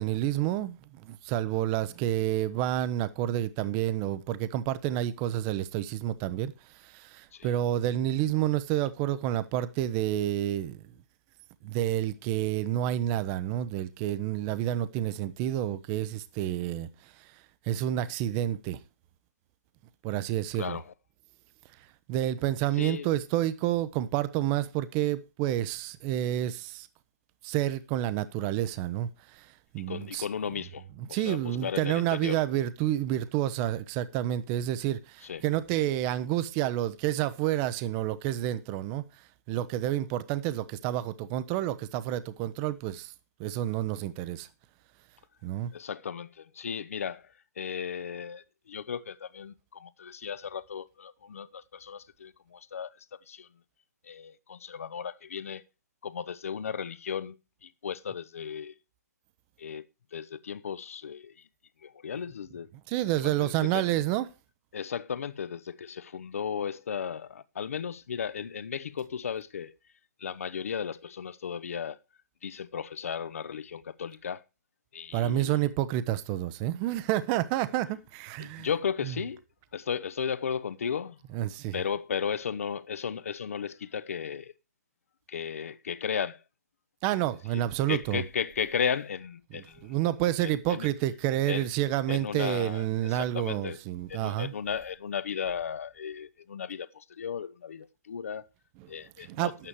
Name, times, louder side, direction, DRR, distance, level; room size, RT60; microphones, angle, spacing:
voice 1, 0.0-10.8 11.6-17.3 17.7-18.8 20.0-20.8 22.1-26.9 27.4-30.2 31.1-39.0 39.5-43.1 43.4-44.5 45.4-45.7 62.9-64.3 75.1-78.7 79.0-79.1 81.3-81.8 87.0-88.2 89.5-94.5 99.2-99.6, right 13 dB, 25° right, 0.7 m, -29 dB
voice 2, 20.6-20.9 22.8-23.1 29.9-32.4 35.2-35.4 45.7-53.5 54.0-55.6 56.0-58.7 59.6-59.9 60.1-61.3 61.8-62.7 63.2-63.9 64.7-69.8 70.2-72.0 72.4-74.4 74.9-75.7 78.4-79.4 79.7-81.2 81.7-84.5 85.3-86.4 87.5-87.6 87.9-89.9 90.4-90.9 91.5-91.7 92.1-93.8 94.1-98.5 98.9-99.5, left 7 dB, 55° left, 0.8 m, -35 dB
11.0 x 8.9 x 4.7 m
figure-of-eight pair, 130°, 9 cm